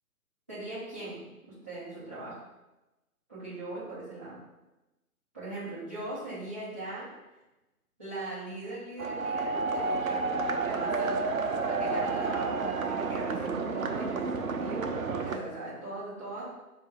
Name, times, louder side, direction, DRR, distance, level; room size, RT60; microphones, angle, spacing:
voice 1, 0.5-2.4 3.3-4.4 5.3-7.1 8.0-11.4 11.6-16.4, right 2 dB, 10° right, -14 dB, 0.6 m, -40 dB
sound 1, 9.0-15.4, right 4 dB, 65° right, 0.5 m, -30 dB
3.6 x 2.3 x 4.3 m, 1.0 s
figure-of-eight pair, 140°, 46 cm